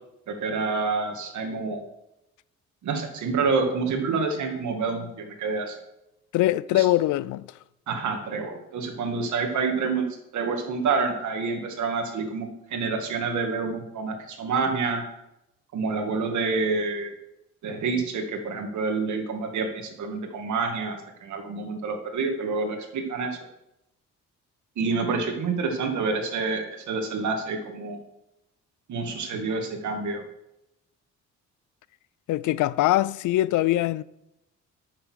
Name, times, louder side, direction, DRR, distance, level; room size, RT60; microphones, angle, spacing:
voice 1, 0.3-1.8 2.8-5.7 6.7-6.9 7.9-10.1 10.3-15.0 15.7-17.1 17.6-23.4 24.8-28.0 28.9-30.2, right 4 dB, 70° right, 2.1 m, -28 dB
voice 2, 6.3-7.5 32.3-34.0, left 15 dB, 80° left, 0.5 m, -22 dB
8.6 x 6.7 x 6.5 m
cardioid pair, 90°, 30 cm